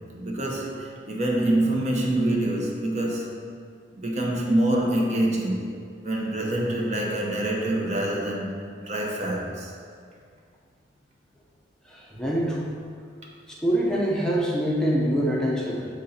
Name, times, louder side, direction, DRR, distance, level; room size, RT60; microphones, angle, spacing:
voice 1, 0.2-3.4 3.9-5.7 6.0-8.6 8.9-9.7, right 1 dB, 40° right, -1 dB, 0.8 m, -25 dB
voice 2, 11.9-12.7 13.6-15.9, equal, 5° left, -5 dB, 0.6 m, -25 dB
7.1 x 3.8 x 4.2 m, 2.2 s
head